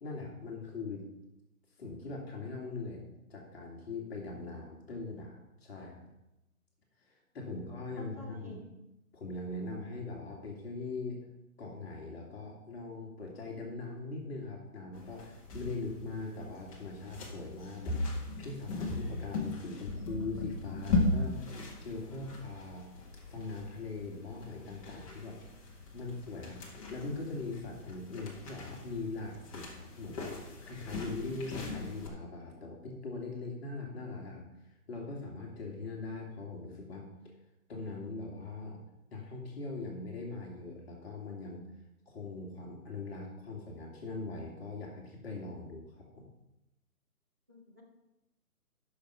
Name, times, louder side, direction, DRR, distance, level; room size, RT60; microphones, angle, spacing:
voice 1, 0.0-1.1 1.8-6.1 7.1-8.7 9.1-11.2 11.6-17.9 18.4-21.4 21.8-22.8 23.3-25.4 25.9-30.3 30.6-34.4 34.9-37.1 37.7-38.8 39.1-41.7 42.1-46.3, left 3 dB, 40° left, -1 dB, 2.2 m, -41 dB
voice 2, 8.0-8.7 47.5-47.8, equal, 10° right, -5 dB, 0.6 m, -50 dB
sound 1, 14.9-32.1, left 2 dB, 20° left, 1.6 m, -38 dB
12.0 x 6.3 x 5.7 m, 0.94 s
figure-of-eight pair, 150°, 46 cm